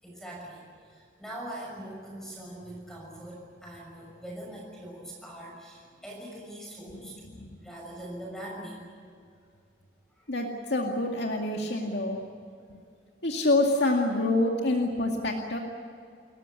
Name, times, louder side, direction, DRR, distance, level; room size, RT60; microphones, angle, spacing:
voice 1, 0.0-7.1 7.6-8.8 10.2-10.3, right 1 dB, 5° left, -2 dB, 6.2 m, -42 dB
voice 2, 7.0-7.5 10.3-12.2 12.7-12.8 13.2-15.6, left 2 dB, 70° left, 1 dB, 2.2 m, -27 dB
29.5 x 14.5 x 9.8 m, 2.4 s
head